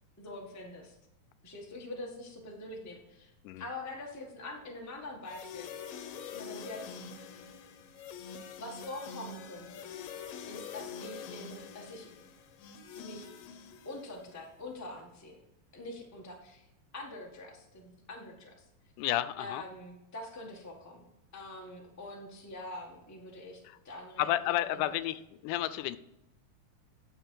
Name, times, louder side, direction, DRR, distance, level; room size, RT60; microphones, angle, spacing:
voice 1, 0.2-1.0 1.4-3.3 3.6-5.7 6.3-7.0 8.6-9.9 10.5-12.1 12.9-13.3 13.8-15.4 15.7-16.7 16.9-18.6 19.4-21.1 21.3-24.9, left 2 dB, 15° left, -1 dB, 0.6 m, -44 dB
sound 1, 5.3-14.4, left 6 dB, 70° left, 1.9 m, -45 dB
voice 2, 19.0-19.6 23.7-23.8 24.2-26.0, left 14 dB, 85° left, 14 dB, 2.1 m, -31 dB
9.9 x 6.7 x 4.7 m, 0.88 s
omnidirectional pair, 3.6 m